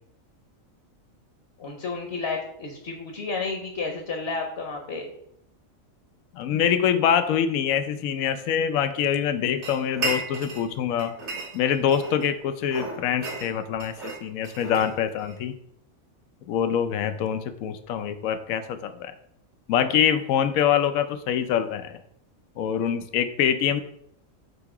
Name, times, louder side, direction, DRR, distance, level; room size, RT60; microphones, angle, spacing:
voice 1, 1.6-5.1, left 4 dB, 50° left, 3 dB, 1.0 m, -31 dB
voice 2, 6.3-11.1 11.5-15.5 16.5-19.1 19.7-22.0 22.6-23.8, left 8 dB, 80° left, 9 dB, 1.0 m, -25 dB
sound 1, 9.6-10.7 11.0-12.3 12.7-15.4, right 3 dB, 55° right, 1.7 m, -34 dB
8.0 x 2.8 x 4.8 m, 0.72 s
omnidirectional pair, 1.4 m